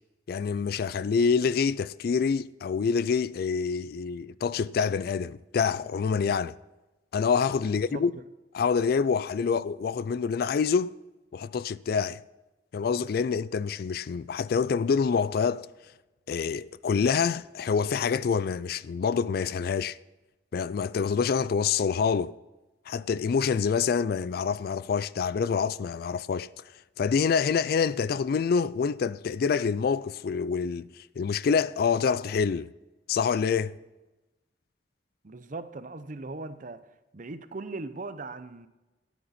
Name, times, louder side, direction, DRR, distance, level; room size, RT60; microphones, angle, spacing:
voice 1, 0.3-6.6 7.1-8.1 8.5-10.9 11.3-12.2 12.7-15.7 16.3-20.0 20.5-22.3 22.9-26.5 27.0-32.7 33.1-33.8, left 6 dB, 55° left, 0.3 m, -26 dB
voice 2, 7.6-8.1 35.2-36.8 37.1-38.7, right 3 dB, 45° right, 0.7 m, -39 dB
13.5 x 9.3 x 4.2 m
head